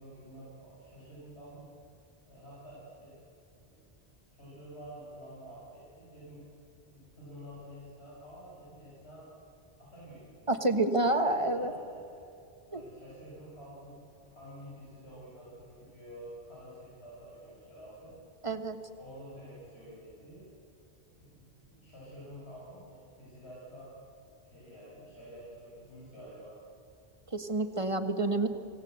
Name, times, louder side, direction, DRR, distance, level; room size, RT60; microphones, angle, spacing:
voice 1, 0.0-1.7 2.2-3.4 3.6-3.8 4.3-6.5 6.8-9.3 9.8-10.5 11.2-12.2 12.7-18.2 19.0-20.5 21.1-23.9 24.2-26.6, equal, 85° left, -8 dB, 6.9 m, -49 dB
voice 2, 10.5-11.7 12.7-12.8 18.4-18.8 27.3-28.5, right 2 dB, 30° right, 7 dB, 1.5 m, -28 dB
27.5 x 17.5 x 8.0 m, 2.6 s
omnidirectional pair, 1.1 m